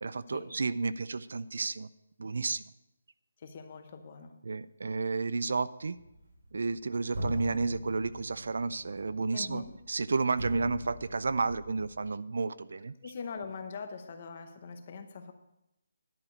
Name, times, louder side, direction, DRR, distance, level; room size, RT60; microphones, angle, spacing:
voice 1, 0.0-1.9 2.2-2.6 4.5-6.0 6.5-12.9, right 4 dB, 60° right, 16 dB, 0.4 m, -32 dB
voice 2, 3.4-4.4 9.3-9.7 13.0-15.3, left 5 dB, 25° left, 7 dB, 0.8 m, -42 dB
sound 1, 5.8-6.8 7.1-12.0, equal, 90° right, 4.0 m, -41 dB
10.5 x 4.9 x 8.3 m, 0.87 s
hypercardioid pair, 180°, 0 cm